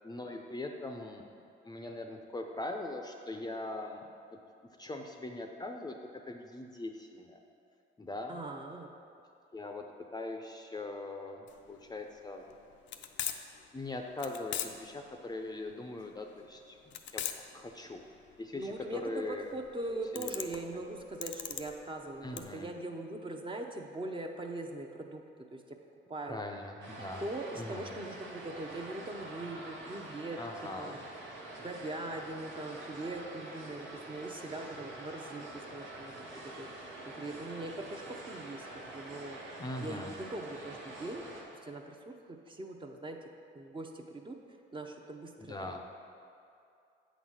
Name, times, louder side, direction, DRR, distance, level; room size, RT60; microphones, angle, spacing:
voice 1, 0.0-4.1 4.8-6.0 6.3-7.4 8.0-8.4 9.5-9.9 10.1-12.5 13.7-18.1 18.4-19.6 20.1-20.8 22.2-22.7 26.3-27.2 27.5-27.9 30.4-31.0 39.6-40.1 45.4-45.8, left 2 dB, 20° left, 3 dB, 0.6 m, -41 dB
voice 2, 8.3-8.9 18.5-25.2 25.5-25.6 26.1-26.4 27.2-30.4 30.8-31.0 31.6-36.1 36.6-36.7 37.2-39.4 39.8-41.2 41.6-42.0 42.3-43.2 43.5-44.4 44.7-45.8, right 2 dB, 25° right, 3 dB, 0.7 m, -41 dB
sound 1, 11.5-22.4, left 10 dB, 70° left, 0.5 m, -41 dB
sound 2, 26.8-41.4, right 2 dB, 80° right, 1.5 m, -46 dB
8.0 x 4.1 x 6.2 m, 2.5 s
cardioid pair, 90°, 20 cm